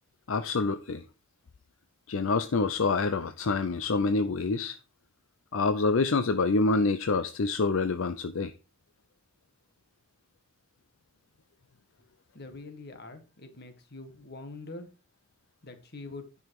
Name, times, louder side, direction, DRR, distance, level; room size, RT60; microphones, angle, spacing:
voice 1, 0.3-1.0 2.1-4.8 5.5-8.5, left 3 dB, 65° left, 0.6 m, -26 dB
voice 2, 12.3-14.9 15.6-16.3, left 2 dB, 50° left, 1.6 m, -44 dB
10.5 x 5.7 x 4.7 m
head